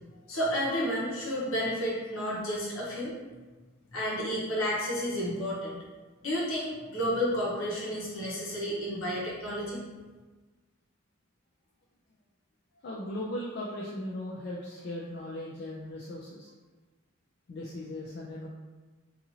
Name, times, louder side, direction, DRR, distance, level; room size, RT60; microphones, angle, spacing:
voice 1, 0.3-3.1 3.9-5.8 6.2-9.8, equal, 70° left, -6 dB, 0.9 m, -31 dB
voice 2, 12.8-16.5 17.5-18.5, left 1 dB, 50° left, -4 dB, 0.3 m, -38 dB
2.7 x 2.5 x 2.8 m, 1.3 s
head